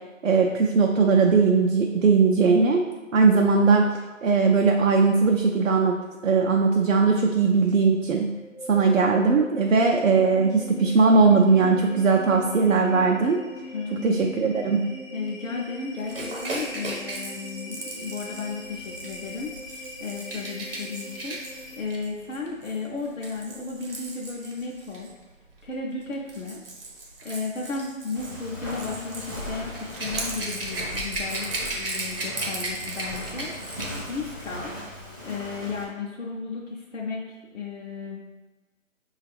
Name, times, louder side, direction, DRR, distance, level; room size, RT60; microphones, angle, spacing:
voice 1, 0.2-2.8 3.1-3.9 4.2-6.0 6.2-8.3 8.7-13.4 14.0-14.9, right 4 dB, 65° right, 1 dB, 0.5 m, -19 dB
sound 1, 8.2-22.1, equal, 30° left, 0.5 m, -40 dB
voice 2, 13.7-14.1 15.1-25.1 25.6-26.6 27.2-34.7 35.2-38.2, left 4 dB, 65° left, -3 dB, 0.7 m, -34 dB
Rattle / Rattle (instrument), 16.1-25.1 26.0-34.1 34.4-34.6, right 2 dB, 45° right, 0.9 m, -36 dB
Walk footsteps, 28.1-35.8, left 1 dB, 15° right, 0.6 m, -38 dB
4.7 x 2.4 x 3.4 m, 1.2 s
figure-of-eight pair, 155°, 40 cm